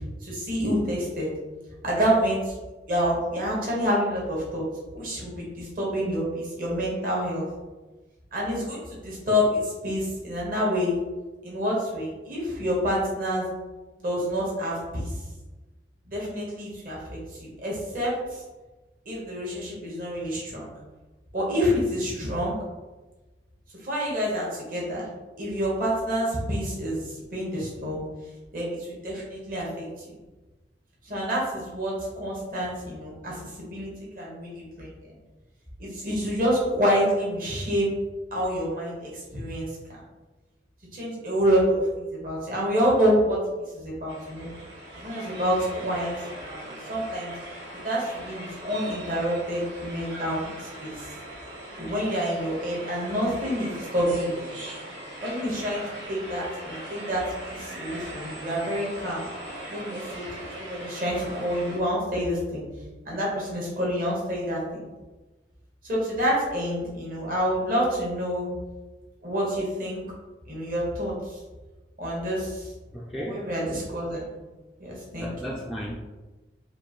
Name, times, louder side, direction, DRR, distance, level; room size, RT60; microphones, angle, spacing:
voice 1, 0.2-1.3 1.8-2.5 2.9-4.6 4.9-7.4 8.3-11.0 11.4-13.4 14.0-15.1 16.1-18.4 19.0-20.7 21.3-22.6 23.8-25.1 25.4-28.0 28.5-30.1 31.0-34.9 35.8-37.9 38.3-39.7 40.9-43.4 43.7-44.5 44.9-47.3 47.7-50.9 51.8-54.4 55.2-55.8 56.1-59.2 59.7-62.6 63.0-64.9 65.8-68.5 69.2-70.0 70.5-71.4 72.0-72.7 73.1-74.3 74.8-75.3, equal, 50° right, -4 dB, 1.4 m, -28 dB
sound 1, 44.1-61.8, right 1 dB, 85° right, 1.1 m, -40 dB
voice 2, 72.9-73.5 75.2-76.0, equal, ahead, -4 dB, 0.3 m, -34 dB
5.2 x 2.5 x 3.1 m, 1.2 s
head